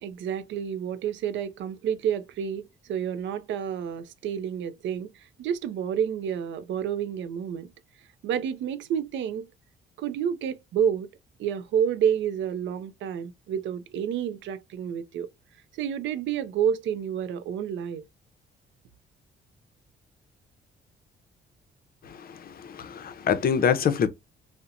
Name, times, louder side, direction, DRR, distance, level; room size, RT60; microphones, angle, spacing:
voice 1, 0.0-7.7 8.2-9.5 10.0-11.1 11.4-15.3 15.7-18.1, right 8 dB, 70° right, 0.4 m, -29 dB
voice 2, 22.0-24.1, left 7 dB, 50° left, 0.5 m, -26 dB
2.7 x 2.1 x 2.4 m
cardioid pair, 90°, 20 cm